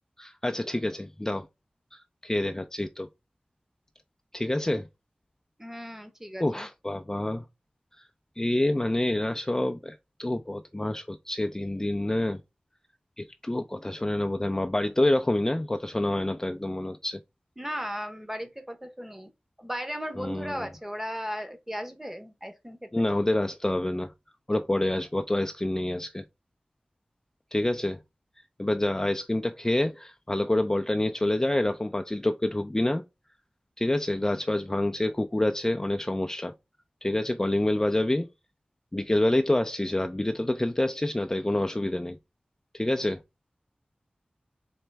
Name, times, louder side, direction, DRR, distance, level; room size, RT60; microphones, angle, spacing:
voice 1, 0.2-1.5 1.9-3.1 4.3-4.8 6.4-7.4 8.0-8.1 8.4-12.4 13.2-17.2 20.2-20.7 22.9-24.1 24.5-26.2 27.5-28.0 28.6-33.0 33.8-36.5 37.0-38.3 38.9-42.2 42.7-43.2, left 1 dB, 20° left, 0.4 m, -27 dB
voice 2, 5.6-6.7 17.6-19.3 19.6-23.0, equal, 10° right, 0.8 m, -36 dB
4.3 x 3.1 x 3.3 m
wide cardioid pair, 70°, 3 cm